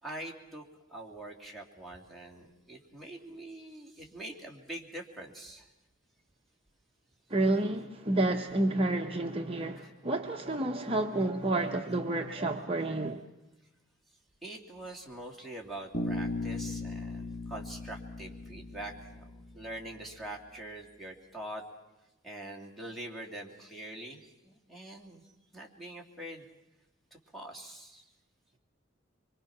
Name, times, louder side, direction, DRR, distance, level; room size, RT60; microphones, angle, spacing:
voice 1, 0.0-5.7 9.8-9.9 14.4-21.6 22.2-26.5 27.1-28.1, right 1 dB, ahead, -1 dB, 2.8 m, -44 dB
voice 2, 7.3-13.3, right 2 dB, 30° right, 2 dB, 0.9 m, -30 dB
Bass guitar, 15.9-20.0, left 2 dB, 50° left, 2.0 m, -38 dB
25.0 x 23.5 x 6.0 m, 1.0 s
head